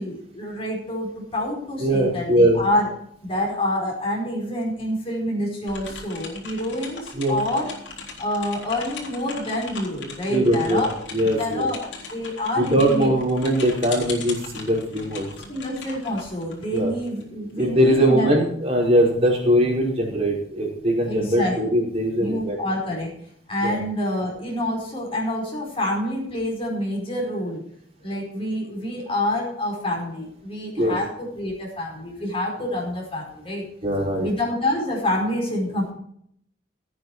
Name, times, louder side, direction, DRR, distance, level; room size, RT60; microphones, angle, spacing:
voice 1, 0.0-2.9 3.2-7.7 8.2-11.0 11.4-11.8 12.1-13.1 15.5-18.3 21.0-21.5 22.2-27.6 28.0-33.7 34.2-35.9, left 1 dB, 30° left, -2 dB, 4.9 m, -27 dB
voice 2, 1.8-2.6 7.1-7.4 10.3-10.8 11.1-11.7 12.6-15.3 16.7-16.9 17.6-22.6 23.6-23.8 30.8-31.0 33.8-34.3, equal, 35° right, -2 dB, 5.4 m, -21 dB
sound 1, 5.7-17.2, left 4 dB, 70° left, 3.7 m, -39 dB
16.5 x 9.0 x 4.8 m, 0.68 s
head